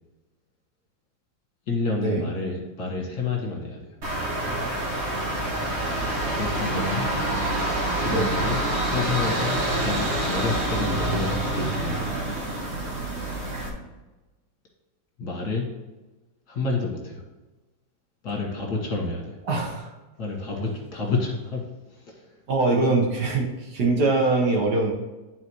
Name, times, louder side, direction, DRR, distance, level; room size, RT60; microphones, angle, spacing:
voice 1, 1.7-3.8 6.3-7.1 8.0-8.6 8.8-12.2 15.2-15.7 16.5-17.2 18.2-19.4 20.2-21.6 21.9-22.3, left 3 dB, 55° left, -1 dB, 2.0 m, -29 dB
sound 1, 4.0-13.7, right 1 dB, 40° right, 1.5 m, -27 dB
voice 2, 19.5-19.9 22.5-24.9, right 3 dB, 65° right, -1 dB, 1.7 m, -23 dB
10.5 x 4.2 x 3.1 m, 1.1 s
omnidirectional pair, 2.0 m